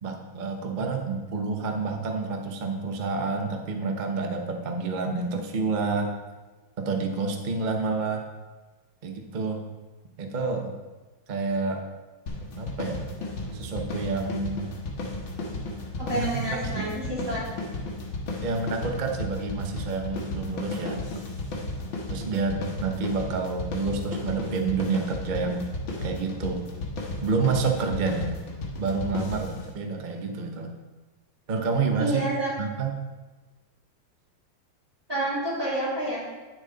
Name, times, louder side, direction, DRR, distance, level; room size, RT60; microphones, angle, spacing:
voice 1, 0.0-6.1 6.8-8.2 9.0-9.6 10.2-10.7 11.3-11.8 12.6-13.0 13.5-14.7 16.1-16.9 18.4-21.0 22.1-25.7 26.0-26.6 27.2-28.3 28.8-30.8 31.5-32.2 32.6-33.0, right 4 dB, 90° right, 4 dB, 0.4 m, -29 dB
sound 1, 12.3-29.7, left 2 dB, 70° left, 2.1 m, -34 dB
voice 2, 16.0-17.4 32.0-32.5 35.1-36.2, right 1 dB, 10° right, -8 dB, 3.0 m, -28 dB
9.9 x 6.5 x 4.0 m, 1.2 s
omnidirectional pair, 2.3 m